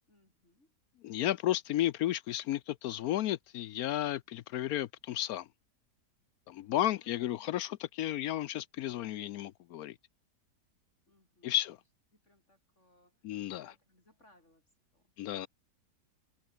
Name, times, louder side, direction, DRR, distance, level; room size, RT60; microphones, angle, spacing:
voice 1, 0.1-0.7 6.7-7.4 11.1-11.6 12.1-15.5, left 1 dB, 40° left, 7.2 m, -68 dB
voice 2, 1.0-5.5 6.5-9.9 11.4-11.8 13.2-13.7 15.2-15.5, left 13 dB, 70° left, 0.9 m, -33 dB
omnidirectional pair, 1.9 m